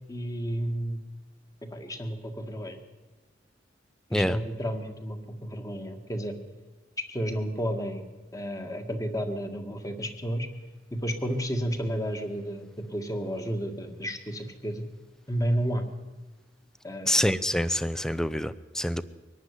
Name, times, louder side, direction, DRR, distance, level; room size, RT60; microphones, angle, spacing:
voice 1, 0.1-1.0 1.7-2.8 4.1-6.3 7.1-8.0 8.3-10.5 10.9-14.8 15.3-15.8 16.8-17.3, equal, 20° left, 6 dB, 1.9 m, -32 dB
voice 2, 17.1-19.0, equal, 5° left, 16 dB, 0.6 m, -26 dB
23.0 x 12.0 x 9.8 m, 1.3 s
head